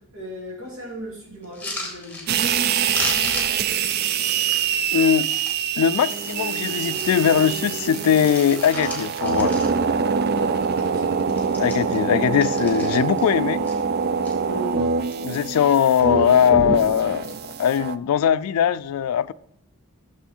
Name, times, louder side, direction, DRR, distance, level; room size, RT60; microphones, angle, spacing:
voice 1, 0.0-3.6 10.3-11.1 14.4-14.9, right 1 dB, 70° right, 2.6 m, -37 dB
sound 1, 1.4-2.7 2.9-5.6 6.0-7.2 7.6-10.0 10.4-10.5 10.7-11.0 11.2-13.3 13.6-14.3 14.9-15.4 15.7-16.2 17.0-17.3, left 2 dB, 10° left, 1.4 m, -36 dB
sound 2, 2.3-18.0, right 6 dB, 45° right, 0.3 m, -24 dB
voice 2, 4.9-5.3 5.8-9.5 11.6-13.6 14.8-14.9 15.2-17.3 17.6-19.3, left 8 dB, 80° left, 0.3 m, -20 dB
6.9 x 6.2 x 4.3 m
head